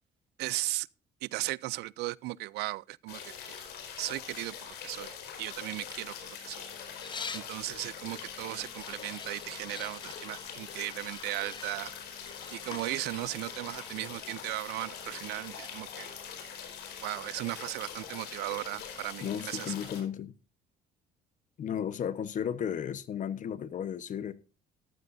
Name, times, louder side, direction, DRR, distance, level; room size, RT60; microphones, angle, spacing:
voice 1, 0.4-0.9 1.2-3.6 4.0-5.1 5.4-6.6 7.3-11.9 12.5-16.1 17.0-19.7, right 20 dB, 85° right, 0.5 m, -36 dB
sound 1, 3.1-20.0, left 7 dB, 80° left, 4.5 m, -43 dB
sound 2, 6.9-7.6 8.6-15.8, left 5 dB, 25° left, 1.1 m, -47 dB
voice 2, 19.2-20.3 21.6-24.3, left 8 dB, 50° left, 1.1 m, -34 dB
14.5 x 12.5 x 2.6 m
cardioid pair, 110°, 17 cm